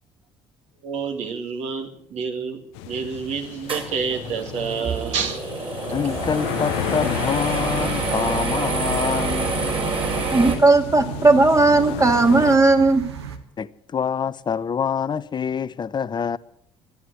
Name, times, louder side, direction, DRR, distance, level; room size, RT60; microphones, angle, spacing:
voice 1, 0.8-5.4, right 6 dB, 60° right, 2.4 m, -28 dB
sound 1, 2.7-12.6, left 13 dB, 70° left, 0.8 m, -33 dB
sound 2, 3.7-10.5, right 3 dB, 40° right, 4.4 m, -27 dB
voice 2, 5.9-9.8 13.6-16.4, left 7 dB, 35° left, 0.8 m, -26 dB
sound 3, 5.9-13.4, right 7 dB, 80° right, 1.1 m, -35 dB
voice 3, 10.3-13.0, right 3 dB, 25° right, 2.2 m, -16 dB
13.0 x 11.0 x 8.3 m
figure-of-eight pair, 50°, 13 cm